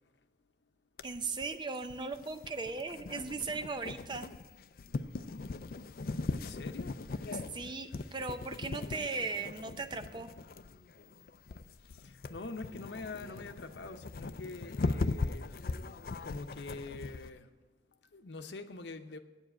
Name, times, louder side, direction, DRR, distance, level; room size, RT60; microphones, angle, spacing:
sound 1, 1.0-17.3, left 3 dB, 55° left, 0.4 m, -39 dB
voice 1, 1.0-4.3 7.5-10.3, right 4 dB, 25° right, 0.5 m, -38 dB
voice 2, 6.3-7.0 11.8-15.5 16.2-17.5 17.9-19.2, left 3 dB, 85° left, 0.8 m, -45 dB
8.9 x 7.3 x 9.0 m
head